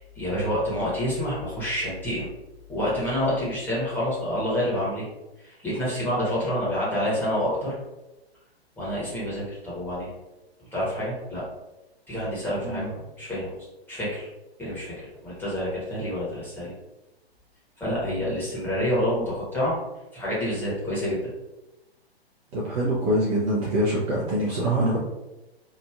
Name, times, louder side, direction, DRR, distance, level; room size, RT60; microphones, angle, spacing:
voice 1, 0.0-2.3 2.7-5.1 5.4-7.7 8.8-10.1 10.7-11.4 12.1-13.5 13.9-14.3 14.6-16.7 17.8-19.8 20.1-21.2, equal, 5° left, -9 dB, 1.1 m, -28 dB
voice 2, 22.5-25.0, right 1 dB, 30° right, -6 dB, 0.6 m, -24 dB
3.0 x 2.4 x 2.4 m, 1.0 s
figure-of-eight pair, 115°, 31 cm